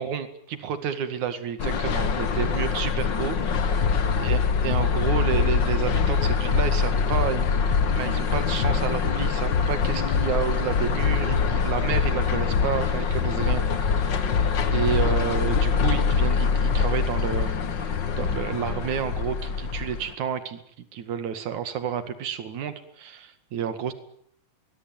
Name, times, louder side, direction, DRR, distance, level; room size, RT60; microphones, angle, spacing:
voice 1, 0.0-3.9 4.2-7.6 8.0-20.6 20.9-23.9, right 8 dB, 80° right, 10 dB, 3.5 m, -30 dB
sound 1, 1.6-20.1, left 6 dB, 45° left, 1.9 m, -24 dB
23.0 x 21.5 x 9.4 m, 0.68 s
omnidirectional pair, 3.4 m